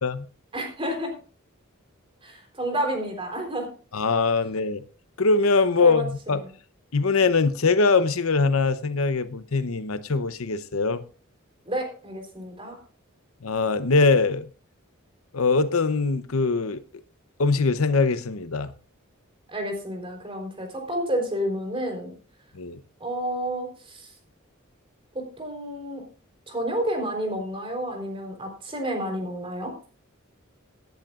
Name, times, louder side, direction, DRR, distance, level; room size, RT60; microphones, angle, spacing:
voice 1, 0.5-1.1 2.2-3.7 5.8-6.3 11.7-12.8 19.5-22.1 23.0-24.1 25.1-26.0 26.5-29.7, right 1 dB, 25° right, 3.8 m, -30 dB
voice 2, 3.9-4.8 5.2-6.4 6.9-11.0 13.4-14.4 15.3-16.8 17.4-18.7 22.5-22.8, left 4 dB, 80° left, 0.8 m, -22 dB
17.5 x 10.5 x 2.5 m
head